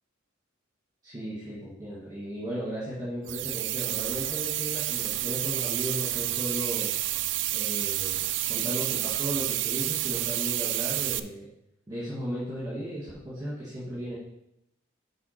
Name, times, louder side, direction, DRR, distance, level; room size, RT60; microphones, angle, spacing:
voice 1, 1.0-6.9 7.5-8.2 8.5-11.5 11.9-14.2, equal, 20° right, -8 dB, 1.9 m, -35 dB
sound 1, 3.3-11.2, right 14 dB, 60° right, 0.4 m, -29 dB
6.3 x 4.7 x 5.8 m, 0.81 s
head